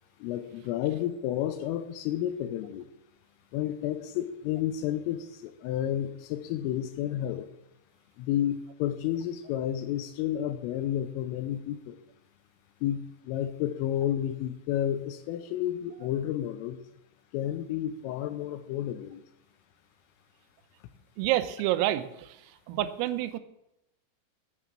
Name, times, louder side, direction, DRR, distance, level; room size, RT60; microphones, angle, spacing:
voice 1, 0.2-2.8 3.5-7.5 8.2-12.0 12.8-16.8 17.3-19.2, left 11 dB, 85° left, 9 dB, 3.3 m, -31 dB
voice 2, 21.2-22.3 22.7-23.4, right 14 dB, 85° right, 12 dB, 3.5 m, -28 dB
13.0 x 9.5 x 7.4 m, 0.85 s
omnidirectional pair, 5.9 m